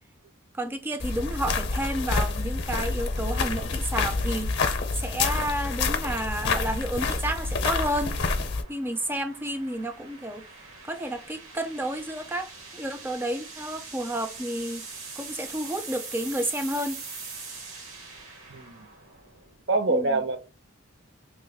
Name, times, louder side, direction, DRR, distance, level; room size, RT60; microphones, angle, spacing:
voice 1, 0.5-4.7 4.9-8.2 8.7-10.5 10.8-14.9 15.2-17.0 19.9-20.2, right 1 dB, 10° right, 0.3 m, -31 dB
sound 1, 1.0-8.6, left 4 dB, 55° left, 0.6 m, -28 dB
sound 2, 3.9-19.6, right 4 dB, 75° right, 1.0 m, -44 dB
voice 2, 18.5-18.9 19.7-20.4, right 2 dB, 55° right, 0.6 m, -25 dB
3.0 x 2.1 x 3.4 m
head